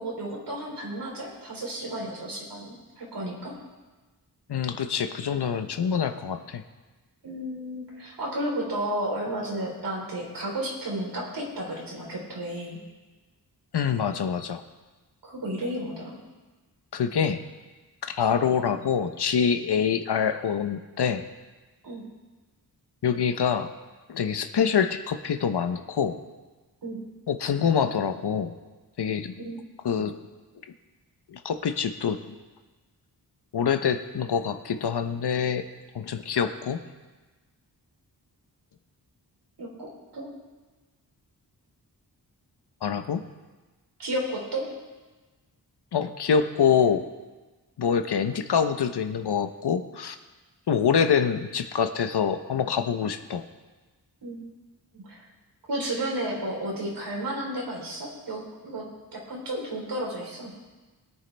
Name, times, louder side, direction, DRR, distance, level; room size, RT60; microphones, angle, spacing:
voice 1, 0.0-3.6 7.2-12.8 15.2-16.2 21.8-22.0 26.8-27.0 29.4-29.6 29.9-30.1 39.6-40.3 44.0-44.7 54.2-54.4 54.9-55.2 55.7-58.9 59.1-60.5, right 1 dB, 80° right, -3 dB, 3.9 m, -33 dB
voice 2, 4.5-6.6 13.7-14.6 16.9-17.4 18.0-21.3 23.0-23.7 24.1-26.2 27.3-28.5 29.0-29.3 29.8-30.2 31.3-32.4 33.5-35.6 35.9-36.8 42.8-43.2 45.9-47.0 47.8-50.2 50.7-53.4, left 7 dB, 75° left, 8 dB, 0.9 m, -25 dB
21.0 x 9.2 x 3.4 m, 1.2 s
wide cardioid pair, 105°, 41 cm